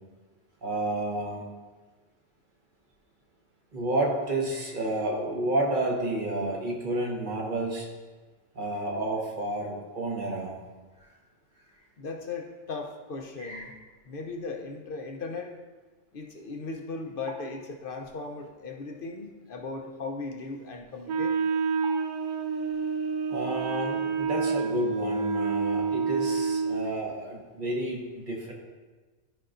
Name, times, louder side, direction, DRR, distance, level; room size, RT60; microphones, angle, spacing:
voice 1, 0.6-1.4 3.7-7.9 8.5-10.5 11.0-11.1 13.4-13.7 21.8-21.9 23.3-28.5, right 1 dB, 40° right, -1 dB, 1.3 m, -30 dB
voice 2, 12.0-13.7 14.0-15.5 16.1-21.4, left 3 dB, 50° left, 2 dB, 0.8 m, -37 dB
Wind instrument woodwind instrument, 21.1-26.9, right 5 dB, 85° right, 1.0 m, -28 dB
12.5 x 5.5 x 2.5 m, 1.3 s
omnidirectional pair, 1.4 m